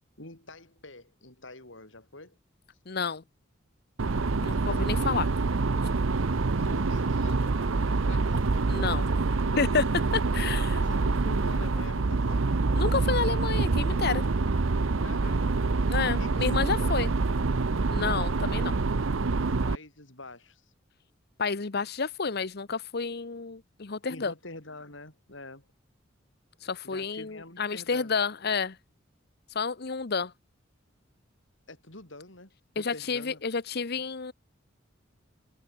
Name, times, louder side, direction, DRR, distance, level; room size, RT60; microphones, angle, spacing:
voice 1, 0.2-2.4 4.5-5.1 6.6-8.4 10.5-12.5 15.0-15.5 15.8-17.0 19.7-20.6 24.1-25.7 26.8-28.1 31.7-33.4, left 2 dB, 70° left, 6.4 m, -46 dB
voice 2, 2.9-3.2 4.4-5.3 8.7-9.1 9.6-10.8 12.8-14.2 15.9-17.1 17.9-18.7 21.4-24.3 26.6-28.8 29.5-30.3 32.8-34.3, left 5 dB, 55° left, 0.9 m, -30 dB
sound 1, 4.0-19.7, right 3 dB, 90° right, 0.8 m, -26 dB
head